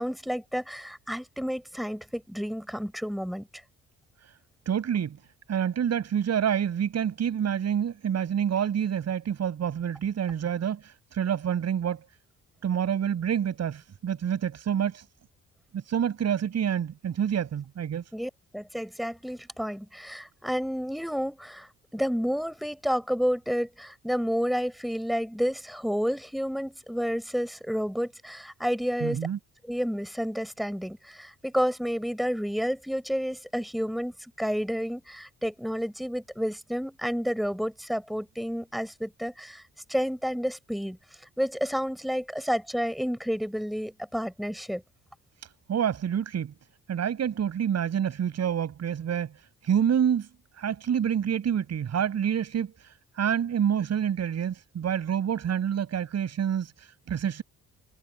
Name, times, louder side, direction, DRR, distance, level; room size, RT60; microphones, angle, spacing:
voice 1, 0.0-3.5 18.1-29.2 29.6-39.6 39.9-41.0 41.4-44.8, equal, ahead, 7.8 m, -30 dB
voice 2, 4.7-5.2 5.5-12.0 12.6-15.0 15.7-18.0 29.0-29.4 45.7-46.5 46.9-49.3 49.6-50.3 50.6-57.4, right 8 dB, 60° right, 7.9 m, -27 dB
cardioid pair, 90°, 30 cm